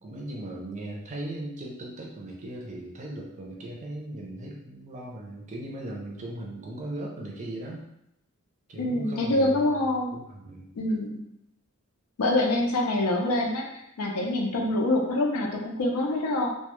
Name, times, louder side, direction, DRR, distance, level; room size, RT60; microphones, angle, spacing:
voice 1, 0.0-7.8 8.7-9.7 10.1-10.7, right 1 dB, 30° right, -2 dB, 0.4 m, -38 dB
voice 2, 8.8-10.2 10.7-11.2 12.2-13.7 14.0-16.5, left 1 dB, 85° left, 0 dB, 0.5 m, -25 dB
2.1 x 2.0 x 2.9 m, 0.81 s
head